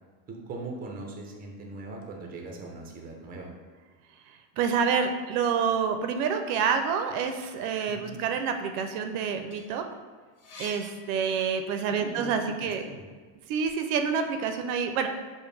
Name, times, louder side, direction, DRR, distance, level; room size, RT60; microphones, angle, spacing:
voice 1, 0.3-3.5 7.9-8.2 11.9-13.1, right 2 dB, 20° right, 1 dB, 0.5 m, -40 dB
voice 2, 4.6-9.8 10.6-12.8 13.5-15.1, right 6 dB, 80° right, 6 dB, 0.5 m, -27 dB
sound 1, 9.5-11.9 12.3-13.8, left 3 dB, 85° left, 1.0 m, -49 dB
5.0 x 2.1 x 3.2 m, 1.5 s
cardioid pair, 140°, 43 cm